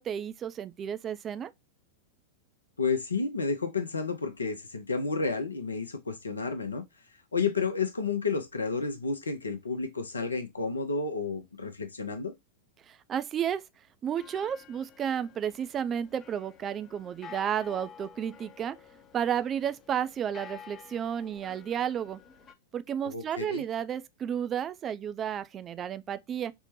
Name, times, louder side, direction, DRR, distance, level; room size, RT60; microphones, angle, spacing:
voice 1, 0.0-1.5 12.9-13.6 14.0-18.8 19.1-22.2 22.7-26.5, right 9 dB, 30° right, 0.3 m, -32 dB
voice 2, 2.8-6.8 7.3-12.3 23.0-23.6, left 4 dB, 80° left, 0.5 m, -31 dB
sound 1, 14.1-22.5, left 7 dB, 25° left, 0.6 m, -51 dB
4.3 x 2.1 x 2.9 m
figure-of-eight pair, 95°, 0 cm